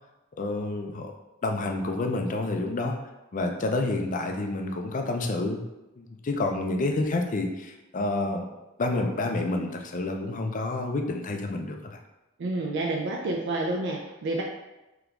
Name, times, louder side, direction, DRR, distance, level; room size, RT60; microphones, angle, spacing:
voice 1, 0.4-1.1 1.4-3.0 3.3-5.6 6.0-8.4 8.8-12.0, left 2 dB, 40° left, 4 dB, 0.4 m, -29 dB
voice 2, 12.4-14.4, right 2 dB, 55° right, 0 dB, 0.4 m, -29 dB
3.7 x 2.9 x 3.4 m, 1.0 s
head